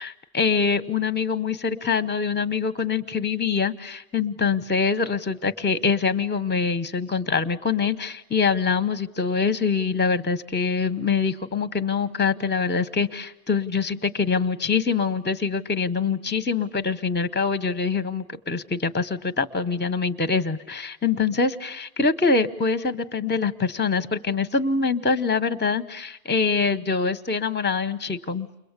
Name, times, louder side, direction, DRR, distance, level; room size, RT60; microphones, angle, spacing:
voice 1, 0.0-28.5, left 5 dB, 10° left, 12 dB, 0.8 m, -24 dB
30.0 x 22.5 x 8.2 m, 0.95 s
omnidirectional pair, 1.1 m